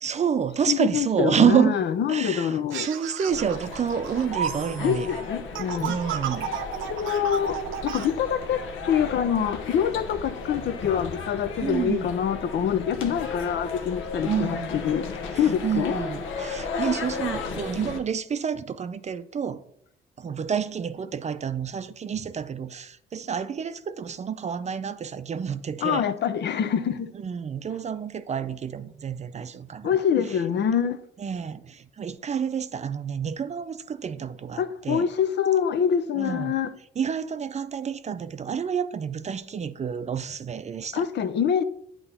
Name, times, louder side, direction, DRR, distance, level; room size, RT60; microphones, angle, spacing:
voice 1, 0.0-1.8 2.1-5.1 5.8-6.6 11.6-12.1 14.2-14.8 15.3-19.6 20.2-26.1 27.1-30.0 30.3-30.4 31.2-35.1 36.2-36.6 37.0-41.1, right 7 dB, 35° right, 0.5 m, -28 dB
voice 2, 0.7-2.9 4.8-6.0 6.8-8.6 8.9-15.1 15.4-15.9 25.8-27.1 29.8-31.0 34.6-36.7 40.9-41.6, left 8 dB, 60° left, 0.6 m, -25 dB
sound 1, 2.7-8.1, right 9 dB, 85° right, 0.6 m, -33 dB
sound 2, 3.3-18.0, left 4 dB, 80° left, 0.9 m, -35 dB
8.5 x 3.0 x 5.4 m
cardioid pair, 90°, 20 cm